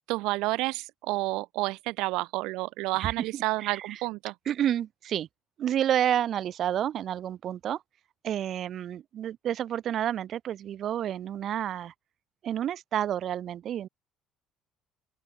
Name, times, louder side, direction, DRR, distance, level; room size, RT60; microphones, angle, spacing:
voice 1, 0.1-4.3, right 21 dB, 85° right, 2.4 m, -30 dB
voice 2, 3.0-4.0 4.5-5.3 5.6-7.8 8.2-11.9 12.4-13.9, right 10 dB, 45° right, 5.6 m, -30 dB
open air
cardioid pair, 140°, 0 cm